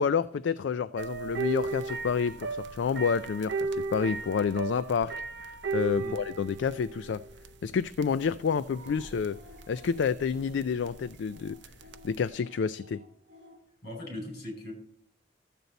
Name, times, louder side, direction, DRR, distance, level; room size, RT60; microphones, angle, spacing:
voice 1, 0.0-5.1 5.4-7.2 7.6-9.4 9.7-11.6 12.0-13.0, left 6 dB, 70° left, 0.4 m, -29 dB
sound 1, 1.0-12.3, right 3 dB, 65° right, 0.7 m, -37 dB
sound 2, 8.7-13.6, left 2 dB, 45° right, 5.0 m, -54 dB
voice 2, 13.8-14.7, left 1 dB, 55° left, 5.4 m, -39 dB
13.5 x 7.9 x 4.1 m
head